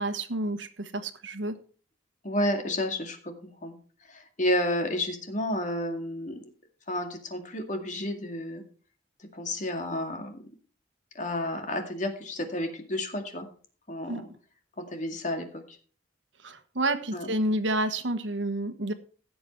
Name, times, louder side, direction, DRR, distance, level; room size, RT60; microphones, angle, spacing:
voice 1, 0.0-1.6 14.1-14.2 16.4-18.9, right 1 dB, 75° right, 10 dB, 1.3 m, -29 dB
voice 2, 2.2-3.8 4.1-6.4 6.9-8.6 9.3-10.4 11.2-13.5 13.9-14.3 14.9-15.8 17.1-17.4, left 1 dB, 40° left, 5 dB, 2.2 m, -31 dB
16.0 x 7.0 x 4.5 m, 0.42 s
head